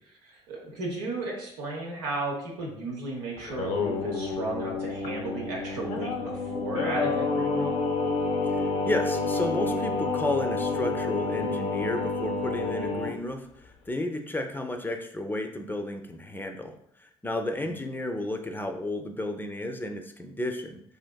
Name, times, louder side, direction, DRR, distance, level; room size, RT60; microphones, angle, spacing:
voice 1, 0.2-7.8 17.6-17.8, right 2 dB, 90° right, -2 dB, 0.7 m, -34 dB
Singing, 3.4-13.1, left 3 dB, 65° left, 0.5 m, -29 dB
voice 2, 8.5-20.8, left 1 dB, 15° left, 4 dB, 0.4 m, -33 dB
3.3 x 2.5 x 2.2 m, 0.71 s
hypercardioid pair, 55°, 13 cm